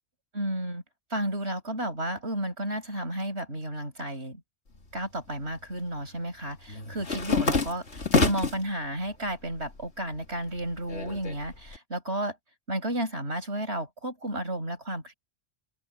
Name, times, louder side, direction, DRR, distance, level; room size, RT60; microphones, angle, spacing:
voice 1, 0.3-0.8 1.1-4.4 4.9-12.4 12.7-15.1, right 1 dB, 70° right, 6.3 m, -32 dB
sound 1, 4.8-5.6 5.9-8.7 9.1-9.8 10.1-11.8, left 4 dB, 85° left, 2.6 m, -28 dB
open air
omnidirectional pair, 1.1 m